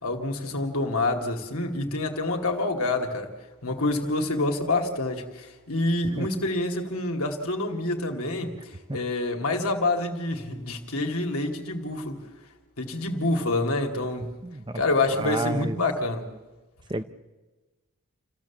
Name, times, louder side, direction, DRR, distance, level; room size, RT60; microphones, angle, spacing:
voice 1, 0.0-3.3 3.6-12.2 12.8-14.3 14.7-16.3, left 2 dB, 85° left, 3 dB, 2.4 m, -27 dB
voice 2, 14.4-14.8 15.1-15.8 16.9-17.0, right 2 dB, 20° right, 10 dB, 0.7 m, -30 dB
28.5 x 15.0 x 7.3 m, 1.2 s
head